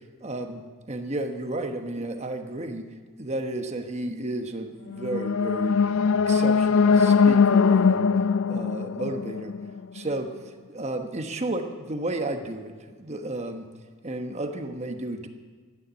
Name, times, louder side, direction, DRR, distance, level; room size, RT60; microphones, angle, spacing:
voice 1, 0.2-0.6 0.9-2.9 3.2-5.8 6.3-8.1 8.5-9.5 9.9-10.3 10.7-13.7 14.0-15.3, right 2 dB, 30° right, 5 dB, 1.1 m, -32 dB
sound 1, 4.9-10.0, left 5 dB, 65° left, 0.4 m, -21 dB
12.0 x 10.0 x 9.8 m, 1.5 s
head